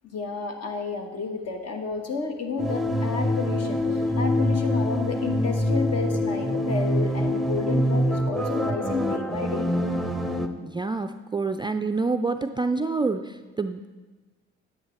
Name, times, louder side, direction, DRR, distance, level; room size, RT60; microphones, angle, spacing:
voice 1, 0.0-9.7, left 4 dB, 50° left, 5 dB, 1.3 m, -31 dB
sound 1, 2.6-10.5, left 1 dB, ahead, 0.8 m, -25 dB
voice 2, 10.6-13.9, right 3 dB, 15° right, 7 dB, 0.3 m, -27 dB
9.7 x 9.0 x 3.2 m, 1.2 s
supercardioid pair, 55°, 32 cm